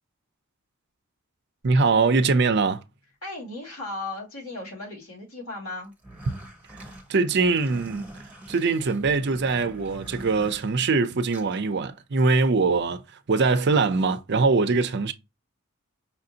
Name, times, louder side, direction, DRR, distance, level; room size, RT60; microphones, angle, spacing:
voice 1, 1.6-2.8 7.1-8.1 8.5-13.0 13.3-15.1, right 4 dB, 50° right, 0.5 m, -22 dB
voice 2, 3.2-5.9, left 2 dB, 85° left, 2.6 m, -36 dB
sound 1, 5.9-11.6, right 1 dB, 5° right, 1.0 m, -44 dB
5.7 x 2.5 x 2.7 m
head